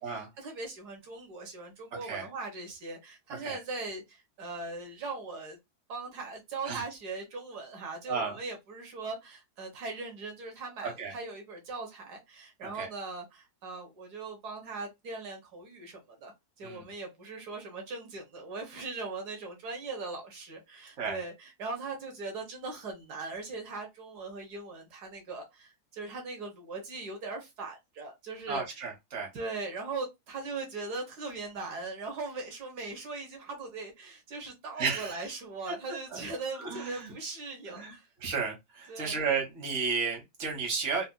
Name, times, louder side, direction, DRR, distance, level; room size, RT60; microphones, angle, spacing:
voice 1, 0.0-5.6 5.9-28.9 29.3-38.1 38.9-39.3, right 3 dB, 85° right, 1.7 m, -40 dB
voice 2, 10.8-11.1 12.8-12.9 16.6-16.8 21.0-21.2 28.5-29.3 34.8-35.2 36.1-36.2 36.6-37.1 37.7-41.1, right 5 dB, 50° right, 1.6 m, -33 dB
4.1 x 2.5 x 2.2 m
omnidirectional pair, 1.7 m